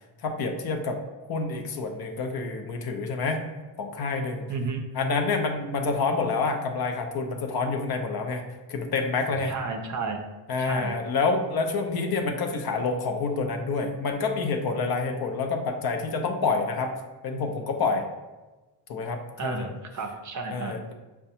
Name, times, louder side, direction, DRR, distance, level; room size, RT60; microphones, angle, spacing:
voice 1, 0.2-1.0 1.3-3.4 3.8-4.4 4.9-9.5 10.5-16.9 17.2-18.0 18.9-19.7 20.5-20.9, left 4 dB, 50° left, 5 dB, 0.6 m, -28 dB
voice 2, 4.5-4.8 9.4-10.2 10.6-11.0 19.4-20.8, right 4 dB, 40° right, 4 dB, 0.5 m, -32 dB
5.6 x 2.2 x 2.7 m, 1.2 s
cardioid pair, 100°, 47 cm